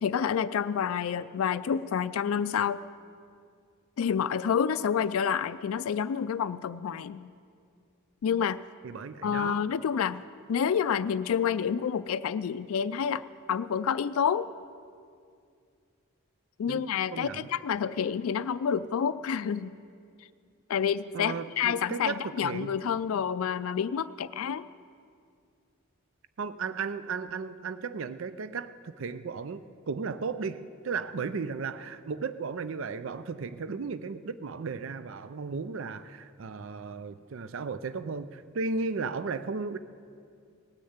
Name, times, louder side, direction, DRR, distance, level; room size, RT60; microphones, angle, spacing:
voice 1, 0.0-2.8 4.0-7.3 8.2-8.6 9.2-10.2 10.5-14.5 16.6-19.7 20.7-24.6, left 7 dB, 75° left, 13 dB, 0.3 m, -28 dB
voice 2, 8.8-9.6 16.7-17.5 21.1-22.7 26.4-39.8, right 4 dB, 60° right, 13 dB, 0.5 m, -35 dB
18.5 x 6.6 x 8.0 m, 2.3 s
head